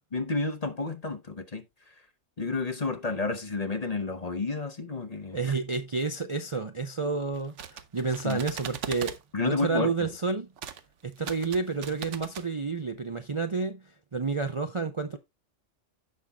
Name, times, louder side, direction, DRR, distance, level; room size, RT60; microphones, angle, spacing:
voice 1, 0.1-1.9 2.4-5.5 8.2-8.4 9.3-10.1, left 3 dB, 35° left, 0.9 m, -31 dB
voice 2, 5.3-9.2 9.4-10.5 11.0-13.8 14.1-15.2, right 4 dB, 35° right, 0.5 m, -30 dB
sound 1, 7.3-9.2 10.6-10.8 11.1-12.5, right 8 dB, 75° right, 1.1 m, -39 dB
16.0 x 5.6 x 2.3 m
omnidirectional pair, 1.3 m